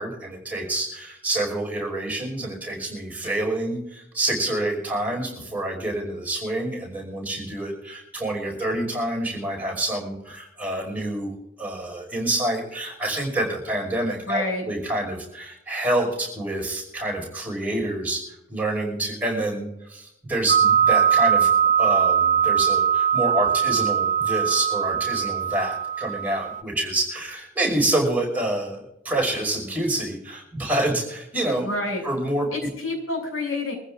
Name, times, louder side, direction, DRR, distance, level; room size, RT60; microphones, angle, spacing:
voice 1, 0.0-11.3 11.6-31.7 32.0-32.5, right 1 dB, 10° right, -2 dB, 5.4 m, -27 dB
voice 2, 14.3-14.6 31.6-32.0 32.5-33.8, left 2 dB, 90° left, 1 dB, 6.7 m, -28 dB
sound 1, 20.5-26.6, right 8 dB, 35° right, 0.6 m, -21 dB
24.0 x 15.0 x 2.6 m, 0.83 s
head